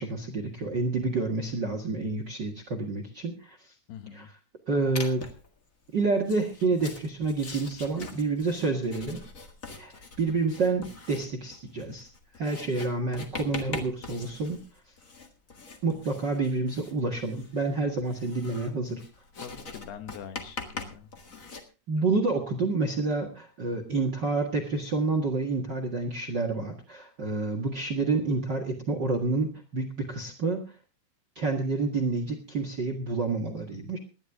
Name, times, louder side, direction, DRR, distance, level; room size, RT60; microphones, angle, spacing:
voice 1, 0.0-3.6 4.1-4.3 4.7-5.3 5.9-9.2 9.8-12.1 12.4-14.6 15.8-19.0 21.9-30.6 31.3-34.0, right 3 dB, 45° right, 7 dB, 1.4 m, -28 dB
voice 2, 3.9-4.3 19.4-21.1, left 8 dB, 90° left, 9 dB, 3.4 m, -43 dB
Writing, 4.9-5.5 6.2-21.6, left 3 dB, 40° left, 1.1 m, -42 dB
19.0 x 11.5 x 3.6 m, 0.32 s
omnidirectional pair, 4.5 m